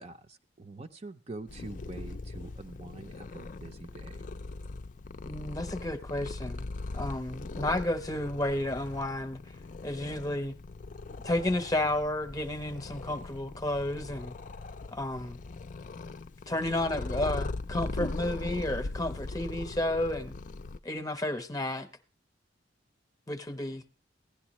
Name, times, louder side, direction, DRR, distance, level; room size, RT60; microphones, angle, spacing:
voice 1, 0.0-4.3, right 2 dB, 35° right, 0.6 m, -45 dB
Purr, 1.5-20.8, left 3 dB, 45° left, 0.5 m, -40 dB
voice 2, 5.3-6.7 6.9-9.4 9.8-10.5 11.2-14.3 14.9-15.4 16.5-20.4 20.8-21.9 23.3-23.8, left 1 dB, 20° left, 0.9 m, -32 dB
16.0 x 11.0 x 3.0 m
head